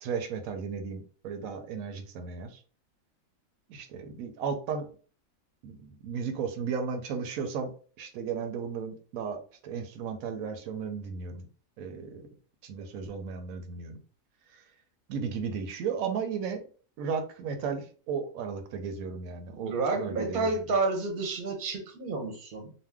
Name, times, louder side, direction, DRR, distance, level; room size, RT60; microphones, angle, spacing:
voice 1, 0.0-2.6 3.7-4.9 5.6-7.7 8.0-11.5 11.8-12.3 12.6-14.0 14.5-14.6 15.1-16.6 17.0-20.5, right 6 dB, 85° right, 7 dB, 1.0 m, -35 dB
voice 2, 19.5-22.7, right 3 dB, 50° right, 3 dB, 0.7 m, -30 dB
2.6 x 2.1 x 3.4 m, 0.40 s
omnidirectional pair, 1.4 m